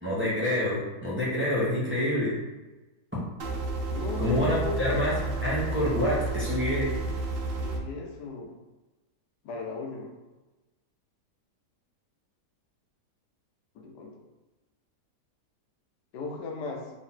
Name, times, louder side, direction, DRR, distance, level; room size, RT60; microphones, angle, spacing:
voice 1, 0.0-2.4 4.2-5.2 5.4-6.9, left 1 dB, 10° right, -9 dB, 0.9 m, -27 dB
sound 1, 3.4-7.8, right 3 dB, 90° right, 0.5 m, -31 dB
voice 2, 3.9-5.0 7.6-8.6 9.4-10.1 13.7-14.2 16.1-16.9, left 3 dB, 80° left, 1 dB, 1.2 m, -36 dB
3.8 x 2.6 x 4.3 m, 1.1 s
omnidirectional pair, 1.8 m